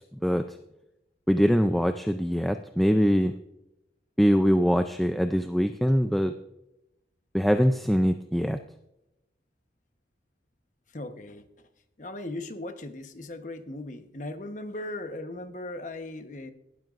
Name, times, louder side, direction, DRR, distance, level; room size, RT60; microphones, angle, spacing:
voice 1, 1.3-3.3 4.2-6.3 7.3-8.6, equal, ahead, 6 dB, 0.4 m, -23 dB
voice 2, 10.9-11.4 12.0-16.5, left 2 dB, 45° left, 8 dB, 1.1 m, -38 dB
17.0 x 12.0 x 2.5 m, 0.89 s
head